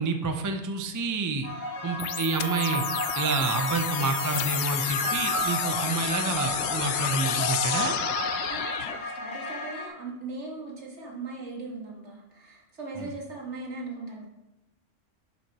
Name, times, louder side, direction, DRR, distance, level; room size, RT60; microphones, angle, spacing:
voice 1, 0.0-1.5 1.8-2.8 3.1-8.0 13.0-13.1, right 4 dB, 25° right, 6 dB, 0.4 m, -28 dB
sound 1, 1.4-9.9, left 1 dB, 85° left, 1.4 m, -32 dB
sound 2, 2.0-9.0, left 10 dB, 70° left, 0.8 m, -31 dB
voice 2, 8.5-14.3, right 3 dB, 65° right, -2 dB, 2.1 m, -39 dB
11.0 x 7.5 x 3.0 m, 0.99 s
omnidirectional pair, 1.3 m